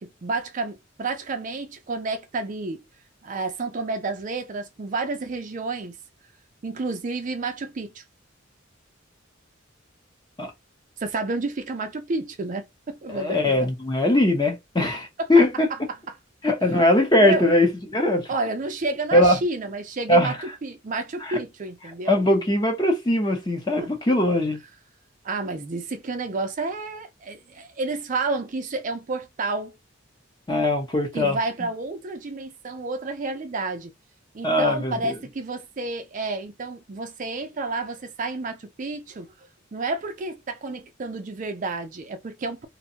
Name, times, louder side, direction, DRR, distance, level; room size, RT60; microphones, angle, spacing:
voice 1, 0.0-2.8 3.2-6.0 6.6-8.0 11.0-13.7 15.7-16.0 16.6-16.7 17.2-17.5 18.3-20.3 20.6-22.2 23.7-24.2 25.2-29.7 31.1-33.9 34.3-39.3 39.7-42.7, right 3 dB, 40° right, 0.4 m, -30 dB
voice 2, 13.1-15.7 16.4-18.3 19.1-19.4 20.1-20.4 21.3-21.4 22.1-24.6 30.5-31.7 34.4-35.0, left 1 dB, 20° left, 0.8 m, -21 dB
2.6 x 2.2 x 2.7 m
head